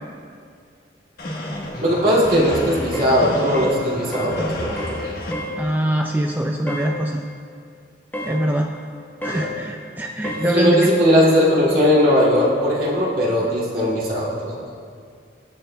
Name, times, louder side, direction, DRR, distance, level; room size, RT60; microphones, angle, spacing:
sound 1, 1.2-5.3, equal, 55° left, 1.2 m, -30 dB
voice 1, 1.8-5.0 9.3-9.5 10.2-14.5, equal, 50° right, -6 dB, 2.2 m, -19 dB
sound 2, 2.9-3.2 3.5-3.8 4.1-4.4 4.8-5.0 5.3-5.6 6.7-6.9 8.1-8.4 9.2-9.5 10.2-10.5, equal, 10° left, 1.0 m, -30 dB
voice 2, 5.6-7.2 8.2-8.7 9.2-10.8, right 1 dB, 10° right, 2 dB, 0.3 m, -23 dB
20.5 x 6.8 x 2.2 m, 2.2 s
head